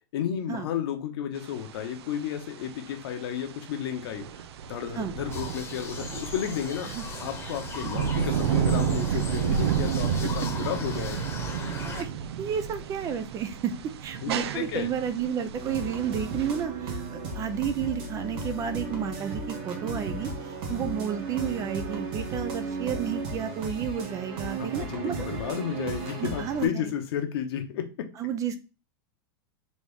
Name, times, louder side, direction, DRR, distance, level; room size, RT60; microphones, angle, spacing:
voice 1, 0.1-4.3 4.7-6.9 7.2-11.2 14.2-14.9 24.6-28.1, left 9 dB, 70° left, 6 dB, 1.0 m, -32 dB
sound 1, 1.4-16.7, right 8 dB, 90° right, 0.4 m, -31 dB
sound 2, 5.3-12.0, left 4 dB, 20° left, 1.0 m, -39 dB
voice 2, 12.4-13.7 14.0-20.3 20.7-25.2 26.2-26.9 28.2-28.6, right 8 dB, 25° right, 11 dB, 0.4 m, -31 dB
sound 3, 15.6-26.7, right 3 dB, 40° right, 1.4 m, -35 dB
4.2 x 3.0 x 3.5 m, 0.31 s
supercardioid pair, 140°, 13 cm